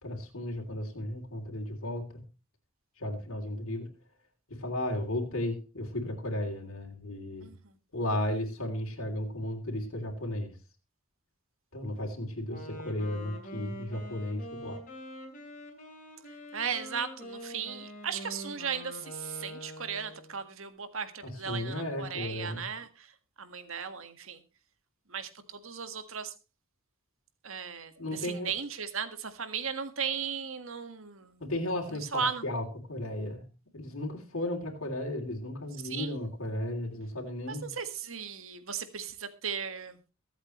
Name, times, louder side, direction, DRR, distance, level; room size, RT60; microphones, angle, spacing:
voice 1, 0.0-2.0 3.0-3.8 4.6-7.5 7.9-10.5 11.7-14.8 21.2-22.6 28.0-28.5 31.4-32.6 32.9-33.4 33.7-37.7, left 1 dB, 75° left, 0 dB, 3.2 m, -34 dB
voice 2, 7.4-7.8 16.5-23.1 23.4-24.4 25.1-26.3 27.4-31.4 31.8-32.4 35.8-36.2 37.5-40.0, right 6 dB, 70° right, 9 dB, 1.7 m, -36 dB
Wind instrument woodwind instrument, 12.5-20.4, equal, 35° left, 4.5 m, -44 dB
23.0 x 8.1 x 3.1 m, 0.31 s
head